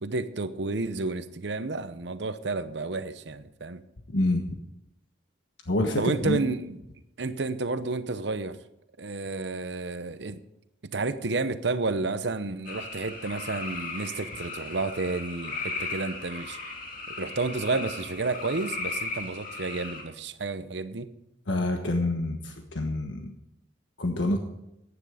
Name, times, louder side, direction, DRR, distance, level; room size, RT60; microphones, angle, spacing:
voice 1, 0.0-3.8 6.0-6.8 7.2-8.6 9.0-10.4 10.9-16.6 17.2-21.1, right 3 dB, 70° right, 12 dB, 0.8 m, -31 dB
voice 2, 4.1-4.6 5.7-6.4 21.5-23.3 24.0-24.4, left 1 dB, 85° left, 4 dB, 1.3 m, -27 dB
sound 1, 12.6-20.0, left 3 dB, 50° left, 2.6 m, -37 dB
15.0 x 9.9 x 5.0 m, 0.87 s
head